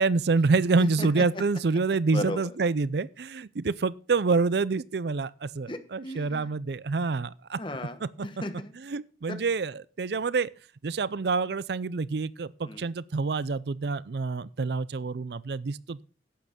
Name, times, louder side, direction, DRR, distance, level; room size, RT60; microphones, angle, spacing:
voice 1, 0.0-7.6 8.0-8.1 8.8-10.5 10.8-16.0, right 4 dB, 70° right, 0.5 m, -27 dB
voice 2, 0.8-1.2 2.1-2.4 5.7-6.5 7.6-8.7 9.3-9.4 12.6-12.8, left 1 dB, 30° left, 1.3 m, -36 dB
11.5 x 8.5 x 5.2 m
head